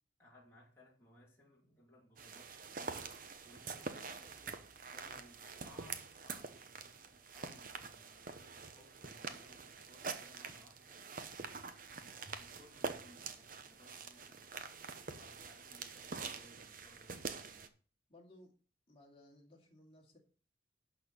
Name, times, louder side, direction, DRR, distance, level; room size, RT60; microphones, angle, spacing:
voice 1, 0.2-3.1 3.4-4.6 4.9-11.0 11.9-17.7, equal, 15° left, 2.8 m, -63 dB
sound 1, 2.2-17.7, right 4 dB, 45° right, 0.8 m, -46 dB
voice 2, 18.1-18.5 18.9-20.2, left 1 dB, 30° left, 2.4 m, -60 dB
11.5 x 4.4 x 6.5 m
head